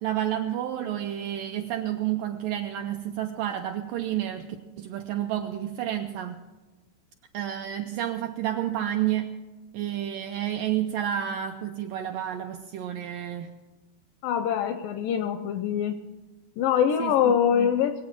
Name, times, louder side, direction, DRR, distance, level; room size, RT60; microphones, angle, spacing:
voice 1, 0.0-4.5 4.8-6.4 7.3-9.3 9.7-13.5 17.0-17.7, right 11 dB, 85° right, 5 dB, 1.9 m, -30 dB
voice 2, 14.2-16.0 16.6-18.0, left 8 dB, 85° left, 9 dB, 1.9 m, -24 dB
22.0 x 8.6 x 5.9 m, 1.2 s
omnidirectional pair, 4.5 m